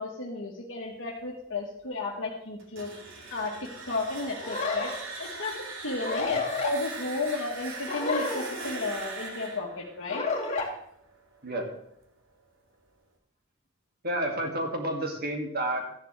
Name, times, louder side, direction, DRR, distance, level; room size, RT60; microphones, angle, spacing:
voice 1, 0.0-2.9 3.3-4.9 5.2-10.2, left 3 dB, 65° left, -2 dB, 1.6 m, -33 dB
sound 1, 2.6-11.4, right 3 dB, 65° right, 1.9 m, -41 dB
sound 2, 4.4-5.0 6.0-6.7 7.9-8.9 10.1-10.7, left 3 dB, 35° left, 2.6 m, -31 dB
voice 2, 14.0-15.8, right 1 dB, 45° right, 2 dB, 2.3 m, -30 dB
14.0 x 11.0 x 3.3 m, 0.73 s
head